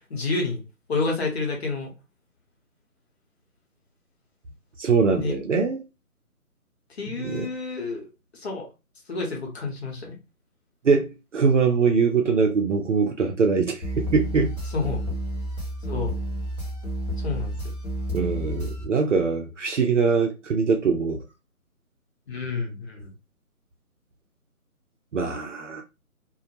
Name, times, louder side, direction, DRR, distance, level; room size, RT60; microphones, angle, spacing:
voice 1, 0.1-0.6 0.9-1.9 5.2-5.4 7.0-8.7 9.1-10.2 14.7-15.0 15.9-16.1 17.2-17.5 22.3-23.1, left 3 dB, 45° left, 1.0 m, -29 dB
voice 2, 4.8-5.8 7.2-7.5 10.8-14.5 18.1-21.2 25.1-25.8, right 5 dB, 55° right, 0.5 m, -22 dB
sound 1, 13.8-18.8, right 1 dB, 20° left, 0.6 m, -31 dB
2.2 x 2.0 x 2.7 m
figure-of-eight pair, 155°, 44 cm